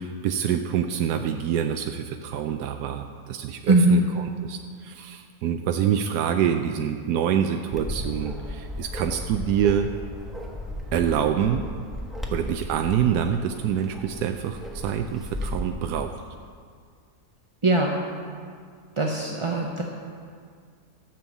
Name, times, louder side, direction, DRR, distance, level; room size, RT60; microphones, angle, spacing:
voice 1, 0.0-9.9 10.9-11.7 12.3-16.1, right 9 dB, 90° right, 6 dB, 1.1 m, -26 dB
voice 2, 3.7-4.0 17.6-17.9 19.0-19.8, right 1 dB, 30° right, 0 dB, 0.6 m, -20 dB
Bark, 7.7-15.7, left 1 dB, ahead, 1.1 m, -35 dB
13.5 x 7.0 x 7.2 m, 2.1 s
omnidirectional pair, 1.7 m